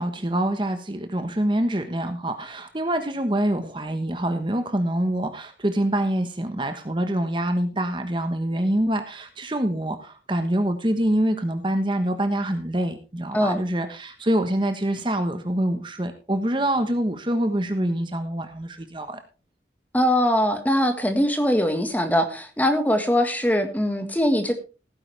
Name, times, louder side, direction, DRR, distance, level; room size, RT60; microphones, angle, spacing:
voice 1, 0.0-19.2, right 1 dB, 25° right, 7 dB, 1.3 m, -25 dB
voice 2, 19.9-24.5, equal, 10° left, 6 dB, 1.6 m, -22 dB
16.5 x 9.8 x 3.4 m, 0.33 s
head